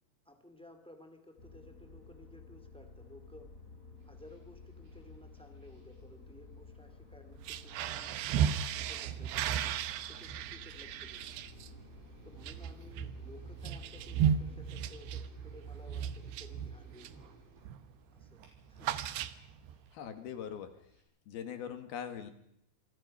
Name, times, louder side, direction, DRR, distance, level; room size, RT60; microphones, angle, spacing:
voice 1, 0.2-3.5 4.0-8.4 8.7-9.7 10.1-11.2 12.2-17.2 18.1-18.4 18.7-19.0 20.2-20.3, left 1 dB, ahead, 6 dB, 1.3 m, -56 dB
sound 1, 1.4-14.7, left 3 dB, 20° left, 3.3 m, -54 dB
sound 2, 4.0-21.0, right 2 dB, 90° right, 8.2 m, -61 dB
sound 3, 7.3-17.3 17.6-17.9 18.2-19.8, right 9 dB, 75° right, 2.9 m, -35 dB
voice 2, 19.9-20.7 21.3-22.3, left 8 dB, 60° left, 8 dB, 3.5 m, -41 dB
27.0 x 22.5 x 5.7 m, 0.74 s
omnidirectional pair, 5.3 m